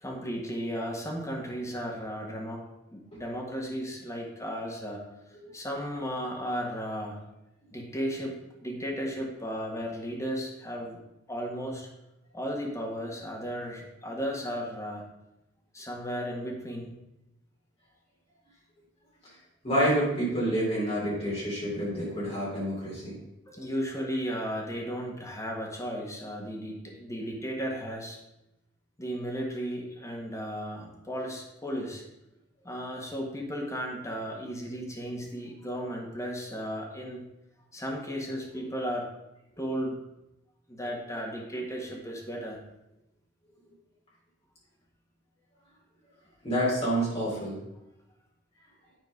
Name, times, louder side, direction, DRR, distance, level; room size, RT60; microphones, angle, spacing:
voice 1, 0.0-2.6 2.9-5.0 5.5-7.2 7.7-8.4 8.6-11.0 11.3-11.9 12.3-15.1 15.7-17.0 23.5-28.2 29.0-32.0 32.6-37.3 37.7-39.1 39.6-40.0 40.7-42.6, equal, 15° left, -1 dB, 1.8 m, -35 dB
voice 2, 19.6-23.1 46.4-47.6, equal, 35° left, -7 dB, 3.2 m, -28 dB
9.4 x 4.5 x 5.3 m, 0.90 s
head